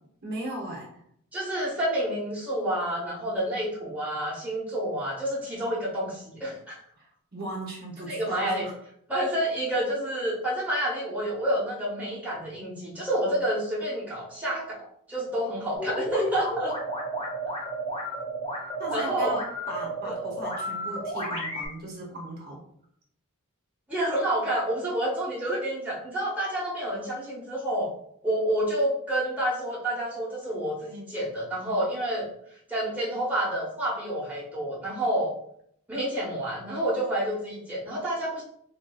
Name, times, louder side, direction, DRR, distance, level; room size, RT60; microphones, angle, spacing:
voice 1, 0.2-1.0 7.0-8.7 18.8-22.6, right 1 dB, 45° right, -3 dB, 0.8 m, -37 dB
voice 2, 1.3-6.8 8.1-8.7 9.1-16.7 18.9-19.4 20.0-20.1 23.9-27.9 28.2-32.3 32.7-35.3 35.9-38.4, right 1 dB, 5° right, -7 dB, 1.0 m, -29 dB
sound 1, 15.7-21.7, right 1 dB, 25° left, 0.8 m, -32 dB
3.7 x 2.6 x 2.3 m, 0.67 s
head